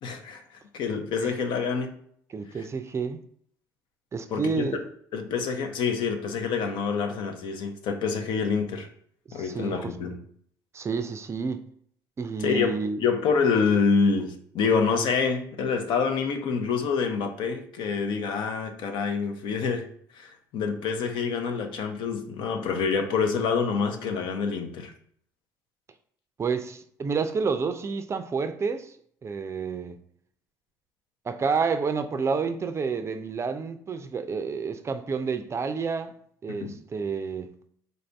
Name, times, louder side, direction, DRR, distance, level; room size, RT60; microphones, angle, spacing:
voice 1, 0.0-0.4 0.7-1.9 4.3-4.7 5.1-8.9 9.3-10.2 12.4-19.9 20.1-24.9 36.6-36.7, left 5 dB, 65° left, 0.6 m, -27 dB
voice 2, 2.3-3.2 4.1-4.8 9.3-9.9 10.7-11.6 12.2-13.0 26.4-28.9 29.2-30.0 31.2-36.1 36.4-37.5, right 5 dB, 30° right, 0.4 m, -29 dB
4.0 x 2.5 x 3.4 m
supercardioid pair, 75°, 9 cm